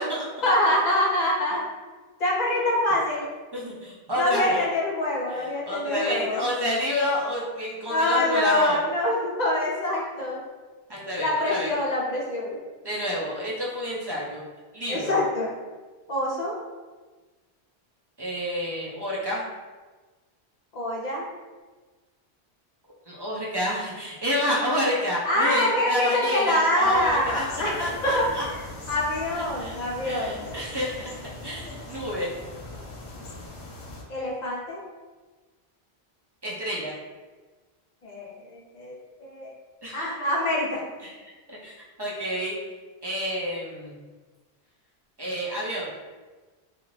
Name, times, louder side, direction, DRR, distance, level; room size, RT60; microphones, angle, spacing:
voice 1, 0.4-1.6 2.2-3.3 4.2-6.4 7.9-10.4 11.2-12.6 14.9-15.6 16.1-16.6 20.7-21.3 25.2-30.5 34.1-34.8 38.0-39.6 39.9-40.8, left 1 dB, 50° left, -3 dB, 0.6 m, -25 dB
voice 2, 3.5-4.6 5.4-8.8 10.9-11.7 12.8-14.4 14.7-15.1 18.2-19.4 23.1-27.4 27.8-28.4 29.3-32.3 36.4-36.9 39.8-40.1 41.0-41.1 41.5-42.6 43.0-44.0 45.2-45.9, equal, 45° right, -6 dB, 0.3 m, -29 dB
sound 1, 26.8-34.0, left 2 dB, 75° left, 0.8 m, -40 dB
2.5 x 2.4 x 3.1 m, 1.3 s
omnidirectional pair, 1.1 m